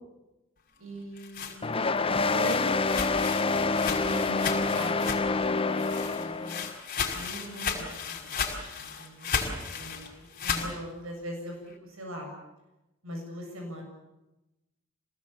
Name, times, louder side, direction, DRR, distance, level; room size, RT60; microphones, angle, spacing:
voice 1, 0.8-2.8 3.9-6.6 7.1-8.3 8.7-10.1 10.4-12.3 13.0-13.8, equal, 80° right, 2 dB, 7.2 m, -41 dB
sound 1, 0.9-5.5 5.8-10.7, left 6 dB, 45° left, 5.6 m, -34 dB
sound 2, 1.6-6.7, left 3 dB, 25° left, 0.8 m, -27 dB
27.5 x 19.5 x 8.6 m, 0.96 s
head